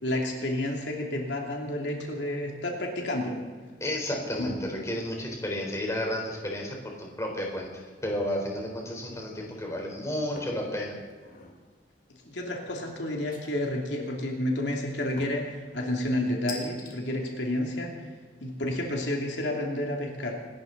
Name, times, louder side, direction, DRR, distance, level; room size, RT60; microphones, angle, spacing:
voice 1, 0.0-3.4 4.4-4.5 12.3-17.9 18.4-20.3, left 1 dB, 75° left, 0 dB, 2.7 m, -30 dB
voice 2, 3.8-7.7 8.0-10.9, left 1 dB, 15° left, 0 dB, 3.9 m, -32 dB
sound 1, 10.4-10.6 11.1-11.6 13.3-13.8 15.2-15.5 16.5-17.0, left 3 dB, 50° left, 3.0 m, -42 dB
26.0 x 13.5 x 4.0 m, 1.5 s
head